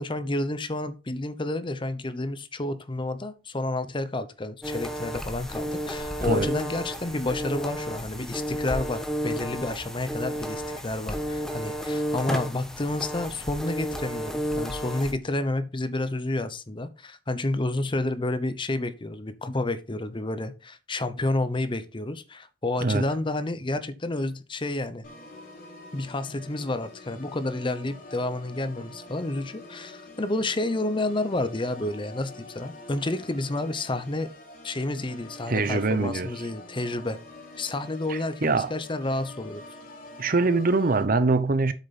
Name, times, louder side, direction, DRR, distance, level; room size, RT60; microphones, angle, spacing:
voice 1, 0.0-25.0 25.9-34.3 34.6-37.2 37.6-39.6, left 2 dB, 30° left, 0.8 m, -30 dB
sound 1, 4.6-15.1, equal, 5° left, 1.3 m, -32 dB
Organ, 25.0-41.0, left 2 dB, 50° left, 3.7 m, -46 dB
voice 2, 35.5-36.3 38.1-38.7 40.2-41.7, right 3 dB, 50° right, 0.8 m, -23 dB
8.3 x 6.6 x 4.2 m
head